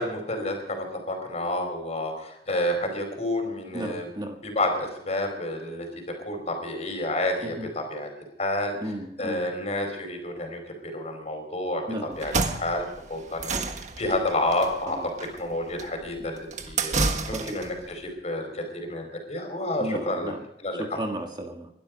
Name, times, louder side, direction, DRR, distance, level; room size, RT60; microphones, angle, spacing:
voice 1, 0.0-4.1 4.4-5.9 6.2-8.1 8.4-8.9 9.2-11.8 12.2-13.6 14.0-15.0 15.4-17.0 17.3-20.3 20.6-21.0, left 1 dB, 40° left, 4 dB, 4.7 m, -29 dB
voice 2, 3.7-4.4 7.4-7.7 8.8-9.4 11.9-12.2 14.8-15.1 17.3-17.6 19.8-20.4 20.8-21.7, equal, 25° right, 3 dB, 1.7 m, -34 dB
sound 1, 12.1-17.8, right 3 dB, 40° right, 1.5 m, -30 dB
22.0 x 12.0 x 5.2 m, 0.76 s
head